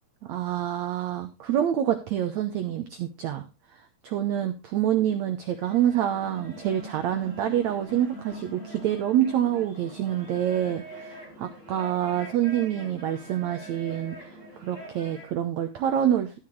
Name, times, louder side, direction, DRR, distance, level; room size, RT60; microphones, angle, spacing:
voice 1, 0.3-3.4 4.0-16.3, right 11 dB, 90° right, 8 dB, 1.5 m, -27 dB
sound 1, 5.5-15.3, right 1 dB, 15° right, 7.0 m, -43 dB
13.5 x 9.7 x 3.1 m, 0.25 s
omnidirectional pair, 4.5 m